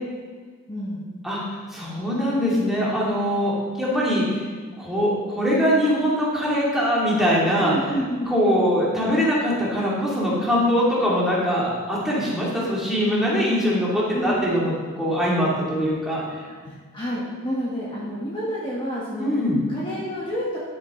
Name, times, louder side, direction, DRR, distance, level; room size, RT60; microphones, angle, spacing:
voice 1, 0.7-1.1 7.6-8.3 14.1-14.5 16.6-19.3 19.7-20.6, equal, 20° left, -7 dB, 1.5 m, -29 dB
voice 2, 1.7-4.5 4.8-7.7 8.3-16.2 19.2-19.6, equal, ahead, -7 dB, 2.6 m, -22 dB
12.0 x 7.7 x 3.8 m, 1.5 s
head